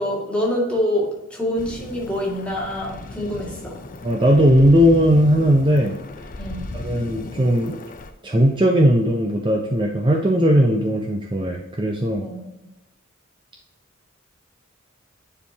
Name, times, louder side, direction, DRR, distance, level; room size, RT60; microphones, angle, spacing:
voice 1, 0.0-3.8 6.4-6.7 12.2-12.5, left 1 dB, 5° left, -3 dB, 1.9 m, -26 dB
sound 1, 1.6-8.1, left 2 dB, 40° left, 0.6 m, -36 dB
voice 2, 4.0-5.9 6.7-7.8 8.2-12.3, equal, 25° right, 0 dB, 0.6 m, -18 dB
9.9 x 4.5 x 2.8 m, 0.95 s
head